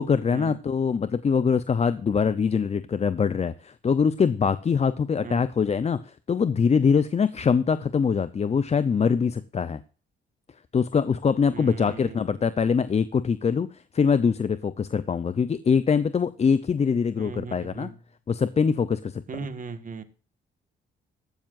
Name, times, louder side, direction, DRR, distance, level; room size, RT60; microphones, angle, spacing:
voice 1, 0.0-9.8 10.7-17.9 18.3-19.2, left 6 dB, 35° left, 14 dB, 0.7 m, -23 dB
voice 2, 11.5-12.3 17.2-17.9 19.3-20.0, right 5 dB, 40° right, 10 dB, 1.7 m, -37 dB
15.0 x 12.5 x 2.6 m, 0.38 s
cardioid pair, 90°, 20 cm